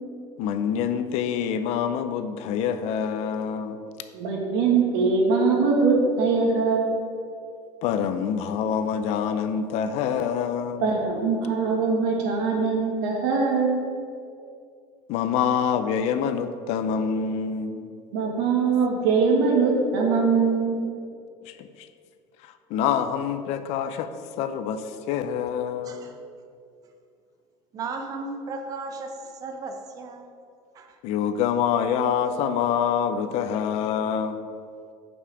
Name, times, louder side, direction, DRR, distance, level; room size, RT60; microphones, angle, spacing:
voice 1, 0.4-3.8 7.8-11.0 15.1-17.9 21.4-21.9 22.4-24.1 24.4-26.0 31.0-34.5, left 7 dB, 55° left, 10 dB, 0.5 m, -26 dB
voice 2, 4.1-6.9 10.8-13.8 18.1-20.8, right 4 dB, 85° right, 0 dB, 1.8 m, -22 dB
voice 3, 25.8-26.2 27.7-30.3 30.7-31.0, right 3 dB, 25° right, 4 dB, 0.6 m, -35 dB
8.3 x 5.5 x 4.9 m, 2.4 s
cardioid pair, 160°, 13 cm